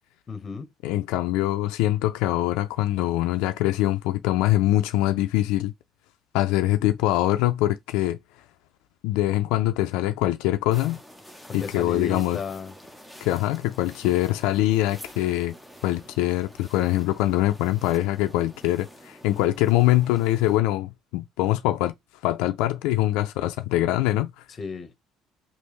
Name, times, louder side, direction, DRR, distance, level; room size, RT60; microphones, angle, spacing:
voice 1, 0.3-0.7 11.5-12.7 24.6-24.9, left 4 dB, 30° left, 0.9 m, -34 dB
voice 2, 0.8-5.7 6.3-8.2 9.0-11.0 11.5-12.4 13.2-15.5 15.8-21.9 22.2-24.3, left 15 dB, 85° left, 0.4 m, -23 dB
sound 1, 10.7-20.6, equal, 5° right, 0.7 m, -47 dB
3.4 x 2.5 x 3.1 m
cardioid pair, 135°, 0 cm